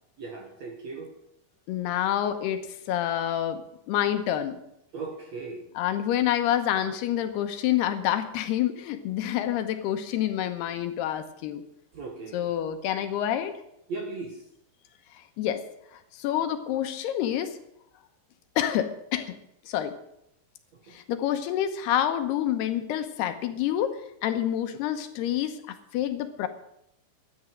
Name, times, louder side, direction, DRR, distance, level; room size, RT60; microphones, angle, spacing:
voice 1, 0.2-1.1 4.9-5.6 11.9-12.5 13.9-14.4 20.9-21.0, right 3 dB, 55° right, 2 dB, 2.1 m, -37 dB
voice 2, 1.7-3.6 3.9-4.6 5.8-11.6 12.3-13.6 15.1-15.6 15.9-17.6 18.6-19.4 19.7-19.9 20.9-26.5, left 11 dB, 75° left, 9 dB, 2.8 m, -28 dB
13.0 x 10.0 x 7.8 m, 0.78 s
omnidirectional pair, 5.0 m